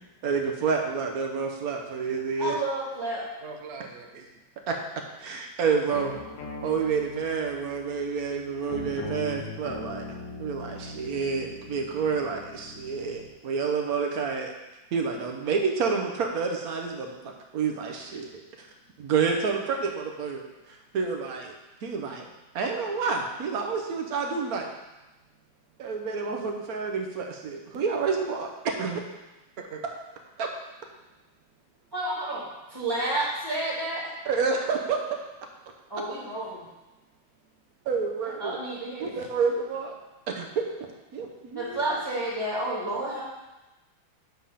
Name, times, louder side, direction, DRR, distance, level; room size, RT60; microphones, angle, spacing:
voice 1, 0.2-2.5 4.7-4.8 5.2-6.1 6.6-10.0 10.4-14.5 14.9-18.3 18.6-18.7 19.0-20.4 20.7-22.3 22.5-24.7 25.8-29.0 30.4-30.5 34.3-35.0 37.9-38.6 39.0-40.0 40.3-40.6 41.1-41.8, right 5 dB, 60° right, 2 dB, 1.1 m, -29 dB
voice 2, 2.4-3.2 31.9-32.4 32.7-34.1 35.9-36.6 38.4-39.1 41.5-43.2, right 1 dB, 10° right, -10 dB, 1.9 m, -30 dB
voice 3, 3.4-4.3 18.0-18.1 29.7-29.8, right 5 dB, 85° right, 2 dB, 0.5 m, -41 dB
sound 1, 5.9-13.3, left 3 dB, 75° left, 1.6 m, -40 dB
7.5 x 3.5 x 5.6 m, 1.0 s
omnidirectional pair, 2.2 m